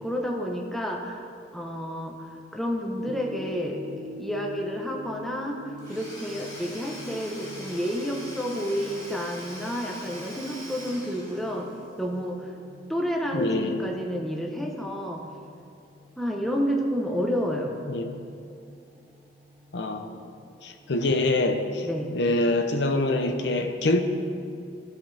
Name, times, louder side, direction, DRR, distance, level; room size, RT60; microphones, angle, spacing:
voice 1, 0.0-3.8 4.2-11.7 12.0-12.5 12.9-15.2 16.2-17.8 21.8-22.1, equal, ahead, 0 dB, 0.9 m, -30 dB
sound 1, 3.0-22.5, left 1 dB, 30° right, 0.9 m, -47 dB
Domestic sounds home sounds / Tools, 5.8-11.9, equal, 20° left, 2.0 m, -43 dB
voice 2, 13.3-13.9 17.9-18.1 19.7-20.2 20.6-21.9 22.1-24.0, left 2 dB, 80° left, 6 dB, 0.7 m, -25 dB
17.5 x 5.8 x 3.4 m, 2.4 s
head